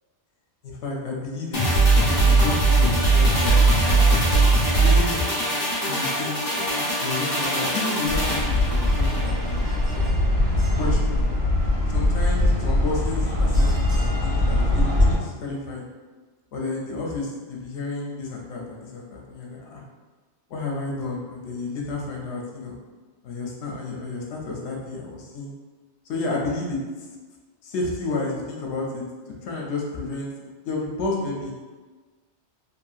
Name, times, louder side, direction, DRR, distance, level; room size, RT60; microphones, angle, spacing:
voice 1, 0.6-1.6 2.1-2.2 2.4-4.1 4.8-5.3 5.9-6.4 7.0-10.2 10.7-11.3 11.9-15.9 16.5-19.8 20.5-22.8 23.2-25.5 26.1-26.8 27.6-29.0 29.4-31.5, left 3 dB, 80° left, -1 dB, 0.9 m, -31 dB
sound 1, 1.5-10.1 10.4-10.5, right 2 dB, 40° left, 0.9 m, -20 dB
sound 2, 8.1-15.1, left 1 dB, 65° right, 1.4 m, -21 dB
2.8 x 2.7 x 2.3 m, 1.3 s
omnidirectional pair, 1.2 m